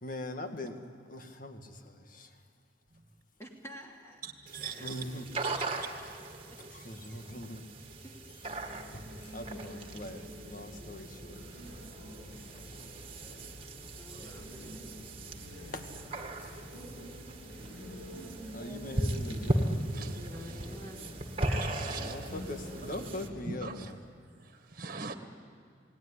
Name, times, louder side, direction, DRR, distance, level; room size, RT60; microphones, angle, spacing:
voice 1, 0.0-0.8 1.1-1.7 2.1-2.3 4.8-5.2 6.7-7.6 8.9-9.0 9.3-10.2 10.5-11.4 15.7-15.8 18.5-19.8 21.8-24.0, left 1 dB, 50° left, 6 dB, 2.0 m, -41 dB
voice 2, 3.4-4.2 4.6-5.9 6.5-6.6 8.0-8.1 9.3-10.5 14.0-15.7 16.1-17.2 20.2-21.3 22.2-22.8, equal, 15° left, 0 dB, 2.9 m, -51 dB
sound 1, 4.5-23.3, right 1 dB, 30° right, 1.9 m, -38 dB
voice 3, 4.5-4.9 19.9-20.2 21.5-22.3 22.8-22.9 23.4-23.9 24.5-25.1, right 5 dB, 45° right, 6 dB, 1.8 m, -42 dB
sound 2, 8.4-23.4, equal, 75° left, 7.5 m, -47 dB
28.5 x 19.0 x 10.0 m, 2.3 s
head